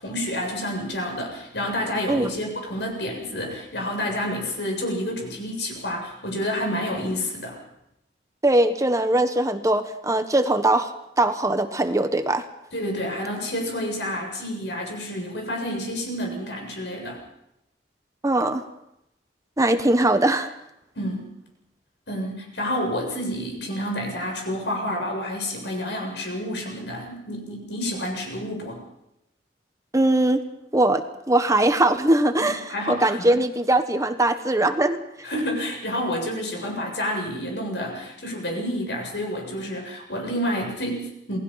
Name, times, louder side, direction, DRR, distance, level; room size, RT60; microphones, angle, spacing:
voice 1, 0.0-7.6 12.7-17.2 21.0-21.3 22.1-28.8 32.4-33.3 35.2-41.4, equal, 75° left, 2 dB, 7.7 m, -29 dB
voice 2, 8.4-10.9 11.2-12.4 18.2-18.6 19.6-20.5 29.9-30.4 30.7-35.0, right 1 dB, 20° right, 8 dB, 1.3 m, -21 dB
28.5 x 19.0 x 5.8 m, 0.83 s
head